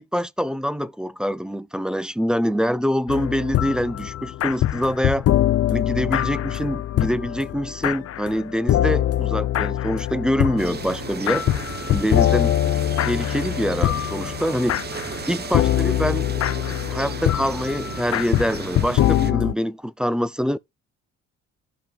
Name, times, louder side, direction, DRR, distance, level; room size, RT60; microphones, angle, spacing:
voice 1, 0.0-5.3 5.7-11.4 11.9-12.6 13.0-14.8 15.3-16.3 16.9-20.6, equal, 5° right, 0.4 m, -25 dB
sound 1, 3.1-19.5, left 12 dB, 55° left, 0.5 m, -23 dB
sound 2, 10.6-19.3, right 6 dB, 35° right, 0.8 m, -35 dB
15.0 x 5.2 x 2.4 m
cardioid pair, 90°, 30 cm